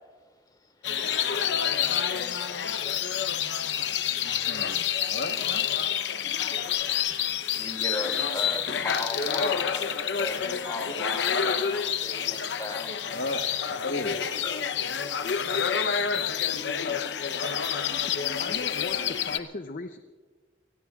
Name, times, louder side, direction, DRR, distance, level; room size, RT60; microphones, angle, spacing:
sound 1, 0.8-19.4, left 8 dB, 90° left, 0.8 m, -28 dB
voice 1, 4.2-5.7 7.1-7.2 13.1-14.3, left 2 dB, 75° left, 5 dB, 1.1 m, -35 dB
voice 2, 7.1-9.9 10.1-13.0 14.4-14.7 15.2-15.3, left 2 dB, 25° left, 3 dB, 2.4 m, -36 dB
voice 3, 18.4-20.0, left 3 dB, 50° left, 8 dB, 0.6 m, -37 dB
26.5 x 19.5 x 2.4 m, 1.4 s
head